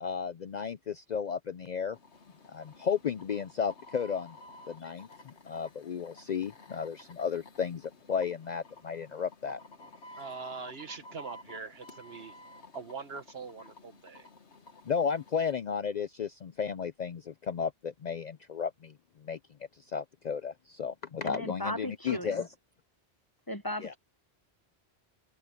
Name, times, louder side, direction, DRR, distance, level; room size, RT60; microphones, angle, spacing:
voice 1, 0.0-2.0 2.5-4.4 4.7-9.6 14.8-18.9 19.2-19.4 19.9-22.4 23.8-23.9, left 6 dB, 50° left, 0.5 m, -33 dB
sound 1, 1.9-15.5, left 1 dB, 90° left, 1.9 m, -52 dB
voice 2, 10.2-12.4 12.7-14.3, right 5 dB, 65° right, 1.6 m, -42 dB
voice 3, 21.2-22.5 23.5-24.0, left 1 dB, 20° left, 0.9 m, -36 dB
omnidirectional pair, 1.1 m